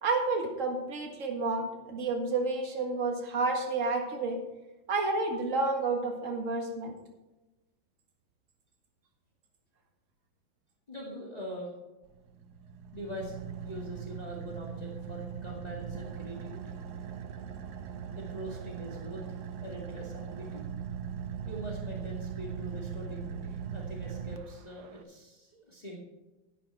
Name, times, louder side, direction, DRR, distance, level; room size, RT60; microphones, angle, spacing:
voice 1, 0.0-4.4 4.9-6.9, right 3 dB, 40° right, 3 dB, 1.9 m, -30 dB
voice 2, 10.9-11.7 12.9-16.8 18.1-19.2 19.6-20.6 21.4-26.0, equal, 20° left, -3 dB, 2.1 m, -43 dB
Car / Idling, 12.1-25.0, right 7 dB, 65° right, 1.2 m, -40 dB
10.5 x 9.9 x 4.4 m, 1.1 s
omnidirectional pair, 2.1 m